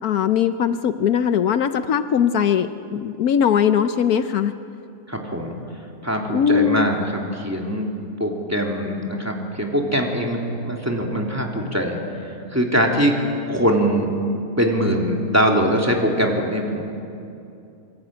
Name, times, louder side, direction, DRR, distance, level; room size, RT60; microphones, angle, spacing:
voice 1, 0.0-4.6 6.3-6.9, left 8 dB, 75° left, 10 dB, 1.3 m, -20 dB
voice 2, 5.1-5.6 6.0-7.9 8.2-13.2 13.5-14.1 14.6-16.8, equal, 10° right, 0 dB, 3.2 m, -22 dB
25.5 x 23.5 x 9.0 m, 2.7 s
omnidirectional pair, 1.6 m